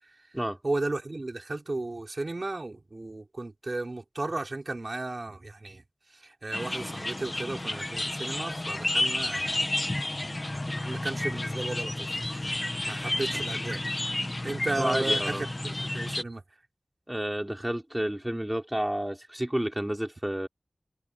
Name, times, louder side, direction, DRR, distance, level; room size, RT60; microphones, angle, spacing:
voice 1, 0.6-5.8 6.2-9.6 10.7-12.5 12.9-14.0 14.4-16.4, right 2 dB, 55° right, 4.5 m, -34 dB
sound 1, 6.5-16.2, left 1 dB, 35° left, 1.4 m, -31 dB
voice 2, 14.8-15.5 17.1-20.5, right 1 dB, 15° right, 3.4 m, -30 dB
wide cardioid pair, 50°, 0 cm